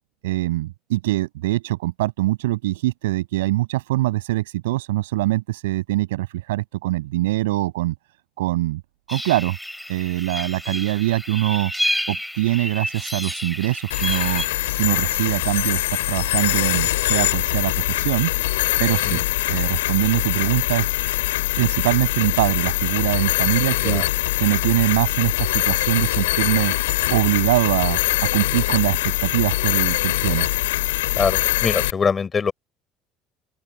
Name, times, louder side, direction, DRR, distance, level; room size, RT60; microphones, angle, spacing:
voice 1, 0.2-7.9 8.4-8.8 9.1-9.6 9.9-11.7 12.1-14.4 14.8-18.3 18.8-19.2 19.5-20.9 21.6-24.0 24.4-26.7 27.1-30.5, right 17 dB, 70° right, 7.3 m, -23 dB
sound 1, 9.1-14.4, equal, ahead, 5.1 m, -30 dB
sound 2, 13.9-31.9, left 16 dB, 70° left, 2.9 m, -23 dB
voice 2, 31.2-32.5, left 5 dB, 30° left, 6.2 m, -23 dB
open air
figure-of-eight pair, 60°, 0 cm